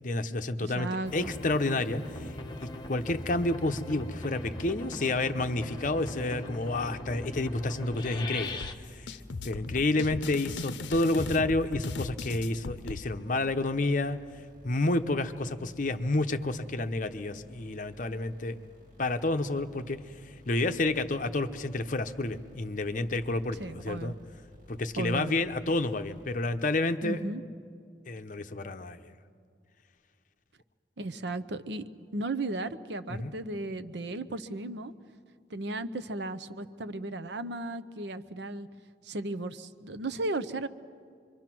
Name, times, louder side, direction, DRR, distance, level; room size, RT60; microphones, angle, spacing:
voice 1, 0.0-2.3 2.9-8.6 9.0-9.1 9.4-14.2 14.6-18.6 19.0-20.0 20.5-24.1 24.7-27.2 28.1-29.0 33.1-33.3, left 2 dB, 45° left, 9 dB, 0.8 m, -29 dB
voice 2, 0.6-1.3 23.6-24.1 25.0-25.4 27.0-27.4 31.0-31.8 32.1-34.9 35.5-38.7 39.0-40.7, right 2 dB, 75° right, 13 dB, 0.8 m, -35 dB
sound 1, 1.0-8.7, left 1 dB, 25° left, 1.1 m, -40 dB
sound 2, 8.0-26.8, left 1 dB, 50° right, 6.2 m, -55 dB
sound 3, 8.6-13.0, left 3 dB, 80° left, 0.6 m, -37 dB
26.0 x 24.0 x 6.1 m, 2.2 s
head